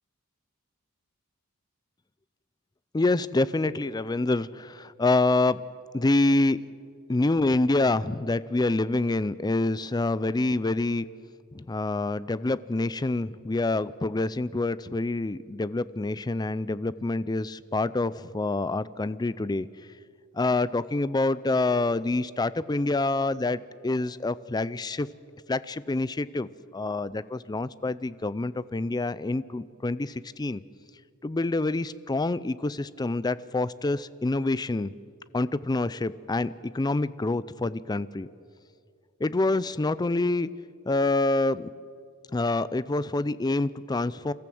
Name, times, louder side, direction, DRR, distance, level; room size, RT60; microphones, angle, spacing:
voice 1, 2.9-5.6 5.9-6.6 7.1-11.1 11.5-19.7 20.3-25.1 25.5-30.6 31.2-34.9 35.3-38.3 39.2-40.5 40.9-41.7 42.3-44.3, left 2 dB, 20° left, 17 dB, 0.4 m, -27 dB
27.5 x 14.0 x 7.8 m, 2.3 s
head